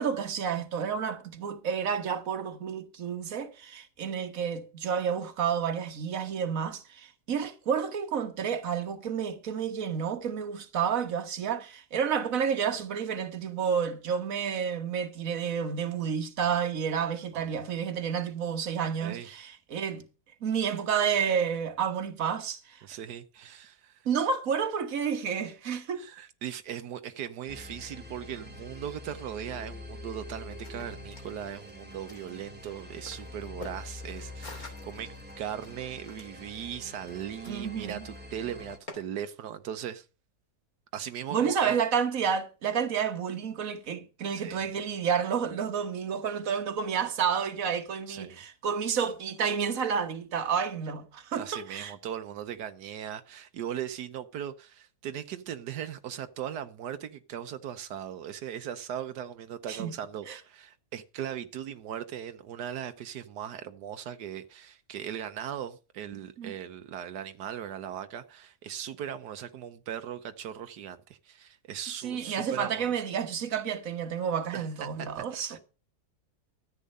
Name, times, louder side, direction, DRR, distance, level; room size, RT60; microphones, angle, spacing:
voice 1, 0.0-20.1 20.4-22.8 24.1-26.0 37.5-38.1 41.3-51.9 59.7-59.9 60.3-60.4 66.4-66.5 72.0-75.6, right 7 dB, 55° right, 1.7 m, -30 dB
voice 2, 19.0-19.4 22.8-24.1 25.9-35.1 35.4-40.1 40.9-41.7 44.3-44.6 48.1-48.4 51.3-72.9 74.5-74.9 75.1-75.2 75.5-75.6, right 9 dB, 85° right, 1.4 m, -39 dB
sound 1, 27.5-38.8, left 2 dB, 5° right, 1.9 m, -45 dB
sound 2, 30.4-38.9, left 3 dB, 60° left, 3.5 m, -50 dB
13.5 x 8.4 x 5.4 m
omnidirectional pair, 1.7 m